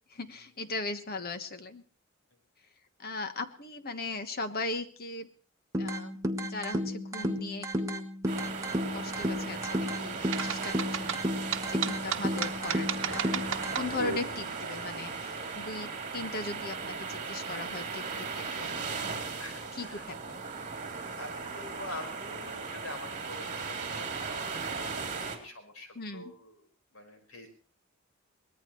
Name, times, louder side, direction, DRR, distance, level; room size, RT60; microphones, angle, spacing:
voice 1, 0.1-1.8 3.0-5.3 5.8-8.1 8.9-11.2 11.6-13.5 13.7-19.4 19.7-20.4 25.9-26.3, left 3 dB, 50° left, 9 dB, 1.4 m, -38 dB
sound 1, 5.7-13.7, equal, 15° right, 1.4 m, -33 dB
sound 2, 8.3-25.4, right 5 dB, 35° right, 3.2 m, -37 dB
sound 3, 10.3-14.2, right 7 dB, 65° right, 1.1 m, -33 dB
voice 2, 13.0-13.4 19.4-20.1 20.8-24.5 24.9-26.5 26.9-27.5, left 2 dB, 85° left, 5 dB, 5.1 m, -45 dB
23.5 x 19.0 x 3.2 m, 0.41 s
head